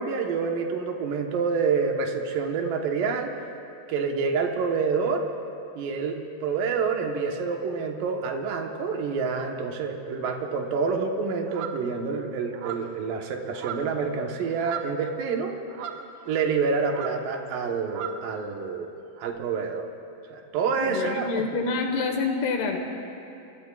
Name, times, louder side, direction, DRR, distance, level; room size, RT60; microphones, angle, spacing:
voice 1, 0.0-3.3 3.9-5.2 5.8-15.6 16.3-18.9 19.2-19.9 20.3-21.5, right 5 dB, 70° right, 2 dB, 2.6 m, -27 dB
sound 1, 11.5-11.8 12.5-13.0 13.5-14.1 14.3-15.0 15.7-16.6 16.9-17.3 17.9-18.3 19.2-19.3, right 9 dB, 85° right, 1.7 m, -37 dB
voice 2, 20.8-22.8, left 4 dB, 80° left, 3 dB, 3.3 m, -27 dB
25.5 x 23.5 x 2.4 m, 2.7 s
omnidirectional pair, 4.6 m